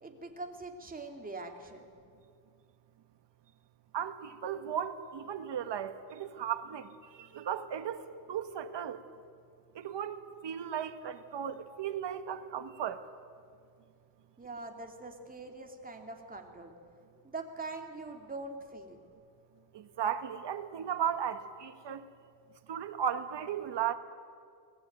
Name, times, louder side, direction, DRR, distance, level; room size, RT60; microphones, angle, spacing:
voice 1, 0.0-1.9 14.4-16.7 17.2-19.0, right 3 dB, 20° right, 3 dB, 2.6 m, -43 dB
voice 2, 3.9-8.0 8.3-9.0 9.7-13.0 19.7-22.0 22.7-23.9, right 8 dB, 70° right, 9 dB, 1.5 m, -36 dB
23.5 x 19.0 x 9.2 m, 2.3 s
wide cardioid pair, 150°, 43 cm